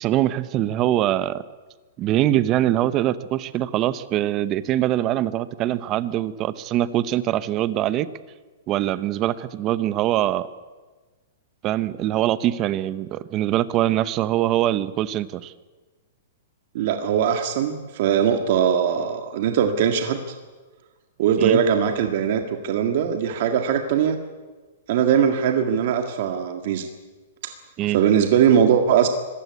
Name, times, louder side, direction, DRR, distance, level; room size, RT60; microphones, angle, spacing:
voice 1, 0.0-1.4 2.0-8.1 8.7-10.5 11.6-15.5 21.4-21.6 27.8-28.0, right 13 dB, 25° right, 15 dB, 0.9 m, -23 dB
voice 2, 16.7-20.2 21.2-24.2 24.9-26.9 27.4-27.5 27.9-29.1, right 8 dB, 50° right, 6 dB, 1.9 m, -20 dB
25.5 x 16.0 x 9.5 m, 1.3 s
hypercardioid pair, 160°, 0 cm